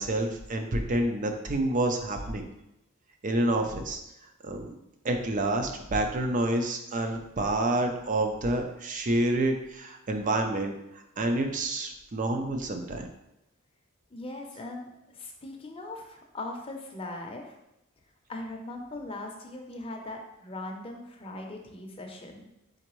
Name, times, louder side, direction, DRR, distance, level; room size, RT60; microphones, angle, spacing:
voice 1, 0.0-2.4 3.2-4.0 4.4-4.7 5.0-10.7 11.2-13.1, right 1 dB, 40° right, 5 dB, 0.5 m, -28 dB
voice 2, 14.1-17.6 18.3-22.5, left 2 dB, 25° left, 2 dB, 0.6 m, -40 dB
4.3 x 3.8 x 3.0 m, 0.89 s
head